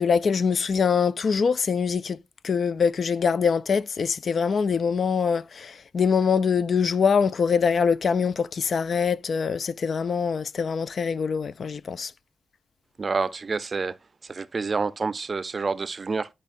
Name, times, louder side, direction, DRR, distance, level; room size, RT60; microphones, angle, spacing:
voice 1, 0.0-2.2 2.4-12.1, left 6 dB, 60° left, 0.3 m, -24 dB
voice 2, 13.0-14.0 14.3-16.3, right 4 dB, 45° right, 0.5 m, -28 dB
11.0 x 5.3 x 2.5 m
cardioid pair, 80°, 0 cm